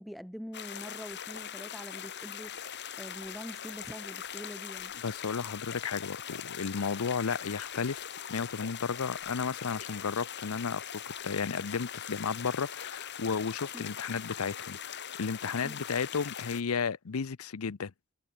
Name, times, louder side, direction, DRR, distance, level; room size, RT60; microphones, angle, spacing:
voice 1, 0.0-4.9 13.7-13.9 15.6-15.8, equal, ahead, 1.0 m, -44 dB
sound 1, 0.5-16.6, left 9 dB, 55° left, 2.7 m, -41 dB
voice 2, 5.0-17.9, left 5 dB, 85° left, 0.6 m, -33 dB
head